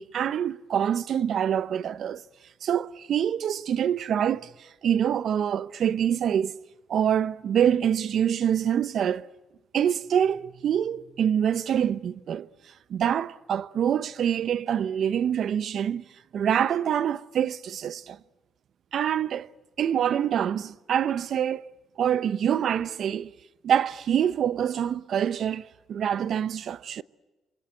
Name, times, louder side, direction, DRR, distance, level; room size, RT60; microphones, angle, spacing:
voice 1, 0.0-2.2 2.6-9.3 9.7-12.5 12.9-16.0 16.3-18.2 18.9-19.5 19.8-21.7 22.0-23.3 23.6-27.0, right 9 dB, 65° right, 0.8 m, -26 dB
28.5 x 24.0 x 8.2 m
cardioid pair, 90°, 0 cm